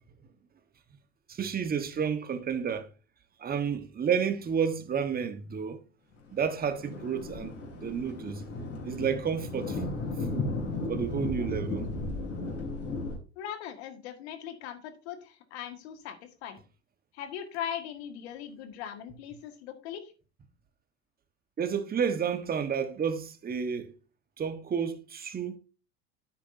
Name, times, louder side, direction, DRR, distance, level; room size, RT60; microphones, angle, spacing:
voice 1, 1.3-2.9 3.4-5.8 6.3-7.5 7.8-8.4 8.8-9.8 10.3-10.5 10.9-11.9 21.6-23.9 24.4-25.6, right 7 dB, 30° right, 1.4 m, -30 dB
Thunder, 6.3-13.2, left 2 dB, 50° left, 3.8 m, -35 dB
voice 2, 13.4-16.6 17.1-20.1, left 9 dB, 75° left, 1.9 m, -40 dB
9.9 x 8.8 x 2.7 m
hypercardioid pair, 85°, 32 cm